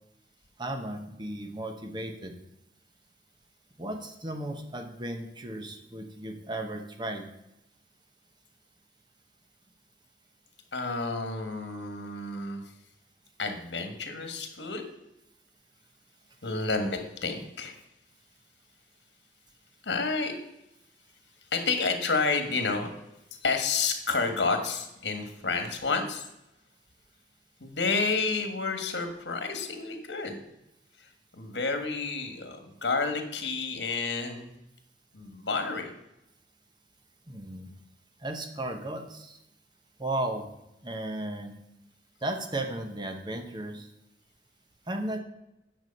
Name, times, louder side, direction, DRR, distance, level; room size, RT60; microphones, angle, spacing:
voice 1, 0.6-2.4 3.8-7.3 37.3-37.7 38.2-39.4 40.0-40.5 40.8-41.6 42.2-43.9 44.9-45.2, right 1 dB, 25° right, 5 dB, 0.9 m, -35 dB
voice 2, 10.7-12.7 13.4-14.8 16.4-17.8 19.8-20.4 21.5-22.9 23.3-26.3 27.6-30.4 31.0-34.5 35.1-35.9, left 4 dB, 80° left, 6 dB, 1.5 m, -30 dB
9.4 x 6.1 x 5.3 m, 0.88 s
head